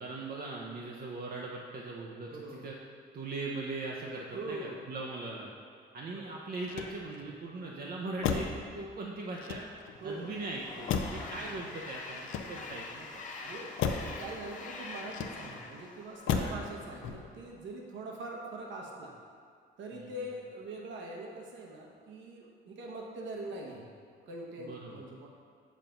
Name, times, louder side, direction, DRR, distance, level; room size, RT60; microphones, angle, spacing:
voice 1, 0.0-2.7 3.1-5.5 5.9-9.7 10.0-13.2 16.3-16.5 19.9-20.2 24.6-25.0, right 2 dB, 50° right, -2 dB, 0.6 m, -40 dB
voice 2, 2.3-2.7 4.3-4.9 6.1-6.2 10.0-10.3 11.2-11.6 13.4-19.1 19.8-23.8 24.3-25.3, right 2 dB, 70° right, -1 dB, 0.9 m, -43 dB
Motor vehicle (road), 6.6-7.4 8.2-8.7 9.3-10.0 10.9-11.3 12.1-12.9 13.8-14.2 15.1-15.7 16.3-16.7 17.0-17.5, left 6 dB, 85° left, 0.5 m, -34 dB
Train, 9.6-17.0, left 3 dB, 40° left, 0.8 m, -45 dB
7.1 x 2.5 x 5.7 m, 2.2 s
cardioid pair, 90°, 20 cm